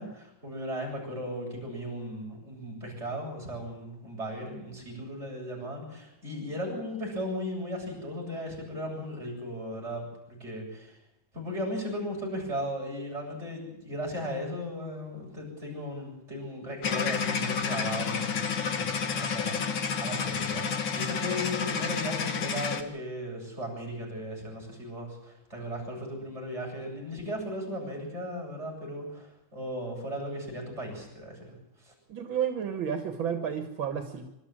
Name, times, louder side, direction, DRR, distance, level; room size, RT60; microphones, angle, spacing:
voice 1, 0.0-11.0 11.3-31.9, equal, 35° right, -2 dB, 8.0 m, -36 dB
sound 1, 16.8-22.8, left 6 dB, 80° left, 2.4 m, -30 dB
voice 2, 32.1-34.3, right 8 dB, 80° right, 6 dB, 2.4 m, -31 dB
25.5 x 13.0 x 8.9 m, 0.90 s
omnidirectional pair, 2.1 m